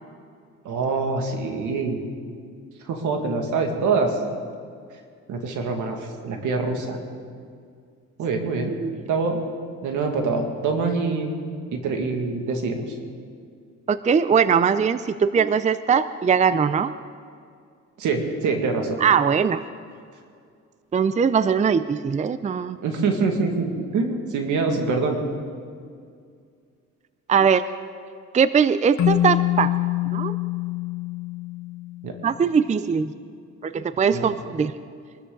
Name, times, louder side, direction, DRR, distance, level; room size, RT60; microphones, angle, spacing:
voice 1, 0.6-2.0 2.8-4.2 5.3-7.0 8.2-8.7 9.1-9.4 9.8-11.3 11.7-12.8 18.0-19.0 22.8-25.2 32.0-32.1 34.1-34.3, right 4 dB, 80° right, 3 dB, 2.1 m, -25 dB
voice 2, 13.9-16.9 19.0-19.6 20.9-22.8 27.3-27.6 28.3-29.7 30.1-30.3 32.2-33.1 33.6-34.7, right 6 dB, 25° right, 13 dB, 0.5 m, -20 dB
Keyboard (musical), 29.0-32.2, left 13 dB, 70° left, 1.0 m, -25 dB
23.5 x 13.5 x 3.9 m, 2.2 s
cardioid pair, 90°, 30 cm